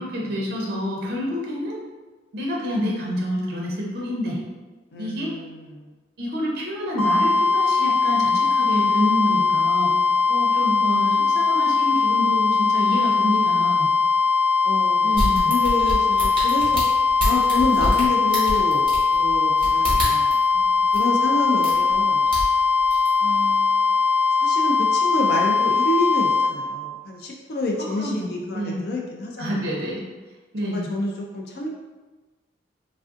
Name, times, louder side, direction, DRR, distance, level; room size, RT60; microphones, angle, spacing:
voice 1, 0.0-1.8 2.3-4.4 5.0-5.4 6.2-9.9 10.3-13.9 15.0-15.5 28.0-28.8 29.4-30.0 30.5-30.9, equal, 55° right, -3 dB, 0.6 m, -27 dB
voice 2, 4.9-5.9 14.6-16.8 17.2-22.2 23.2-23.9 24.4-29.6 30.6-31.7, left 2 dB, 55° left, 0 dB, 0.3 m, -28 dB
sound 1, 7.0-26.5, left 4 dB, ahead, 0.6 m, -20 dB
sound 2, 15.1-20.4 20.9-21.0 21.6-22.0 22.3-23.1 23.5-23.6, equal, 30° right, 1.0 m, -27 dB
3.2 x 2.4 x 2.5 m, 1.3 s
head